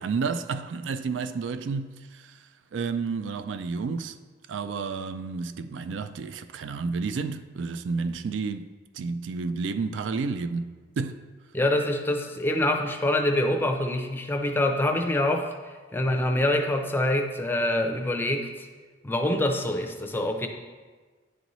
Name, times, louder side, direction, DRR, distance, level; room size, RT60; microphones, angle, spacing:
voice 1, 0.0-2.4 2.7-4.2 4.5-8.7 8.9-11.2, right 4 dB, 85° right, 0.4 m, -31 dB
voice 2, 11.5-15.5 15.9-18.7 19.0-20.5, left 1 dB, 10° left, 0.5 m, -25 dB
10.0 x 4.0 x 3.0 m
head